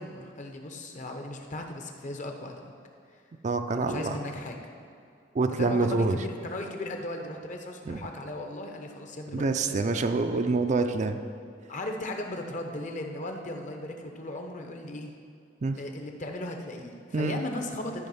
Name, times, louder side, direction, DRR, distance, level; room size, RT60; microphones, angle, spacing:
voice 1, 0.0-2.7 3.1-3.2 3.7-4.6 5.6-9.8 11.7-15.1 15.8-18.1, left 1 dB, 45° left, 4 dB, 0.8 m, -37 dB
voice 2, 3.4-4.2 5.3-6.2 7.9-8.0 9.3-11.2 15.6-15.8 17.1-17.4, right 3 dB, 40° right, 8 dB, 0.4 m, -26 dB
12.5 x 4.9 x 5.5 m, 2.4 s
head